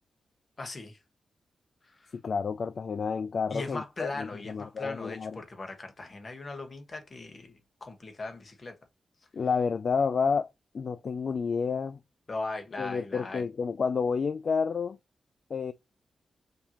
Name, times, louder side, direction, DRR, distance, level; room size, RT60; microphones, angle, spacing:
voice 1, 0.6-1.0 1.8-2.2 3.5-8.8 12.3-13.5, left 3 dB, 40° left, 1.2 m, -39 dB
voice 2, 2.2-5.4 9.3-10.5 10.7-12.0 12.8-15.0 15.5-15.7, left 5 dB, 55° left, 0.3 m, -30 dB
5.1 x 2.8 x 2.9 m
wide cardioid pair, 105°, 0 cm